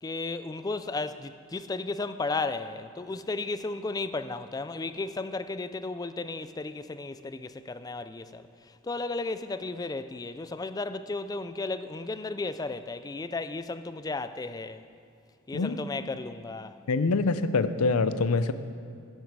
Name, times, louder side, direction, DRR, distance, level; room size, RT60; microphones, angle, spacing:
voice 1, 0.0-14.8 15.5-16.8, left 3 dB, 15° left, 0.3 m, -34 dB
voice 2, 16.9-18.5, left 3 dB, 90° left, 0.6 m, -25 dB
12.5 x 11.0 x 4.7 m
head